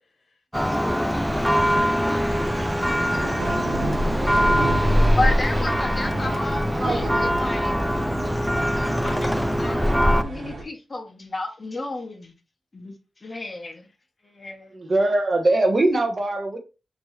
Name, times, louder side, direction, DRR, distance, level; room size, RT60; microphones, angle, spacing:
Church bell, 0.5-10.2, equal, ahead, 0.3 m, -22 dB
voice 1, 0.6-6.5, left 3 dB, 70° left, 1.3 m, -44 dB
sound 1, 2.3-10.6, right 2 dB, 75° right, 1.2 m, -33 dB
voice 2, 5.2-7.7 9.0-12.3 12.7-12.9 13.2-13.9 14.2-14.7, left 2 dB, 35° left, 1.1 m, -32 dB
voice 3, 6.8-7.1 14.7-16.6, right 2 dB, 40° right, 0.9 m, -22 dB
5.1 x 3.1 x 3.1 m
wide cardioid pair, 110°, 0 cm